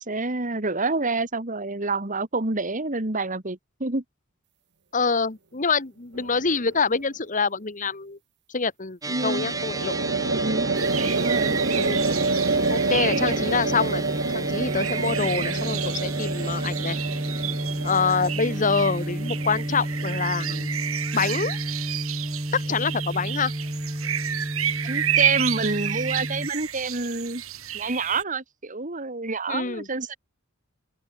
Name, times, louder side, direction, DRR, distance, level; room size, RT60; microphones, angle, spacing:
voice 1, 0.0-4.0 9.1-9.5 10.3-10.7 11.1-11.6 24.8-27.4 27.7-30.2, right 3 dB, 40° right, 2.1 m, -28 dB
voice 2, 4.9-8.2 8.5-9.9 11.7-12.0 12.7-14.1 14.3-17.0 17.8-20.8 21.1-21.6 22.5-23.5 29.5-29.9, left 4 dB, 40° left, 1.4 m, -26 dB
sound 1, 6.2-6.7 9.3-20.6, right 3 dB, 55° right, 1.9 m, -28 dB
sound 2, 9.0-26.5, right 1 dB, 15° right, 1.5 m, -31 dB
sound 3, 10.7-28.2, right 10 dB, 85° right, 4.2 m, -31 dB
open air
head